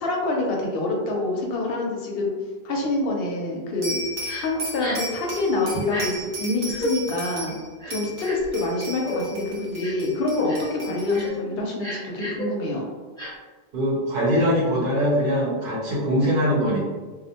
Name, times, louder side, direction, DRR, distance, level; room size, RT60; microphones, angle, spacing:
voice 1, 0.0-2.3 2.6-4.0 4.4-7.5 7.9-12.9, left 2 dB, 70° left, -1 dB, 0.7 m, -26 dB
sound 1, 3.8-7.6 7.9-11.3, right 1 dB, 85° right, 1.0 m, -35 dB
Crying sobbing, 4.3-4.4 4.8-5.1 5.8-6.1 6.7-6.9 7.8-8.5 9.1-9.2 9.8-10.1 10.5-10.7 11.1-11.3 11.8-12.4 13.2-13.3, equal, 5° left, 0.7 m, -32 dB
voice 2, 13.7-16.8, equal, 50° right, -5 dB, 0.8 m, -22 dB
2.4 x 2.0 x 2.7 m, 1.4 s
omnidirectional pair, 1.1 m